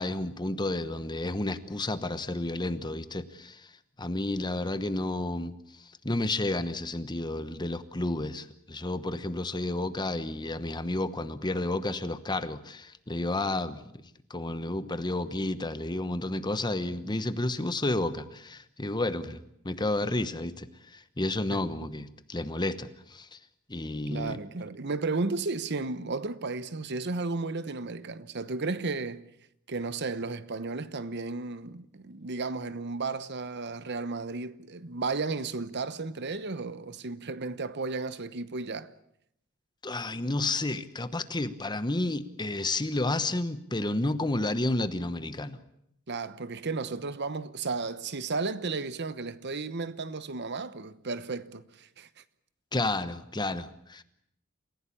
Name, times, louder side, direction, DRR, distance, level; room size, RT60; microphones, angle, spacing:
voice 1, 0.0-3.7 4.0-5.5 6.0-13.9 14.3-19.4 19.6-20.7 20.9-23.4 23.7-24.4 39.8-45.6 52.7-54.0, left 2 dB, 20° left, 1.0 m, -31 dB
voice 2, 24.1-29.2 29.7-38.9 46.1-52.1, right 3 dB, 50° right, 1.0 m, -34 dB
28.0 x 16.0 x 8.6 m
head